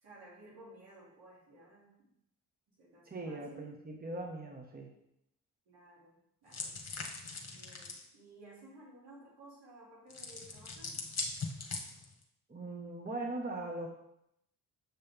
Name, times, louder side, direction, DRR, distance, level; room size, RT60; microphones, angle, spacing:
voice 1, 0.0-2.1 2.8-3.7 5.7-6.7 7.5-11.0, right 1 dB, 85° right, -6 dB, 3.1 m, -56 dB
voice 2, 3.0-4.9 12.5-13.9, right 2 dB, 25° right, 0 dB, 1.5 m, -40 dB
sound 1, 6.5-8.1 10.1-12.2, left 3 dB, 40° left, 1.4 m, -41 dB
7.7 x 5.4 x 3.6 m, 0.78 s
supercardioid pair, 55°, 39 cm